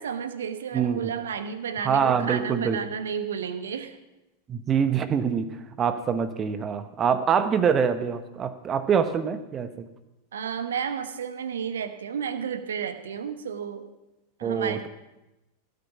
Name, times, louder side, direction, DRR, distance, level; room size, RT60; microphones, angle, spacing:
voice 1, 0.0-4.0 10.3-13.9 14.4-14.9, right 7 dB, 65° right, 10 dB, 1.2 m, -32 dB
voice 2, 0.7-1.1 1.8-2.8 4.5-5.5 5.8-9.9 14.4-14.9, right 7 dB, 25° right, 12 dB, 1.0 m, -25 dB
17.0 x 9.1 x 5.9 m, 0.97 s
figure-of-eight pair, 90°, 0 cm